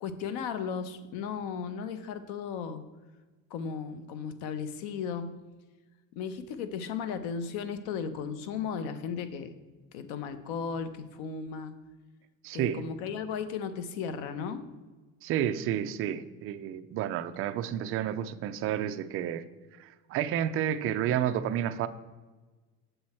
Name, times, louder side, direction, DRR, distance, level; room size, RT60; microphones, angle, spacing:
voice 1, 0.0-2.8 3.5-5.3 6.1-9.5 9.9-11.7 12.5-14.6, left 6 dB, 75° left, 11 dB, 0.9 m, -35 dB
voice 2, 12.4-12.8 15.2-19.4 19.8-21.9, right 10 dB, 35° right, 9 dB, 0.4 m, -30 dB
7.9 x 6.8 x 4.2 m, 1.2 s
cardioid pair, 170°, 38 cm